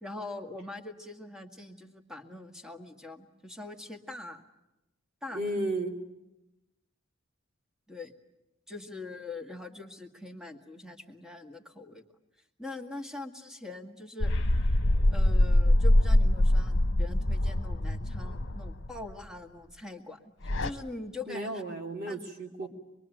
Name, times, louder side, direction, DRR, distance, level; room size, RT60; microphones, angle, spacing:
voice 1, 0.0-4.4 5.2-5.4 7.9-8.1 8.7-12.0 12.6-14.3 15.1-20.3 20.6-21.6 22.1-22.3 22.6-22.7, left 2 dB, 5° right, 4 dB, 2.0 m, -43 dB
voice 2, 5.3-5.9 21.3-22.7, right 1 dB, 50° right, 1 dB, 3.2 m, -33 dB
sound 1, 14.2-19.1 20.4-20.7, left 1 dB, 60° left, 1.3 m, -24 dB
25.5 x 22.5 x 9.3 m, 0.93 s
head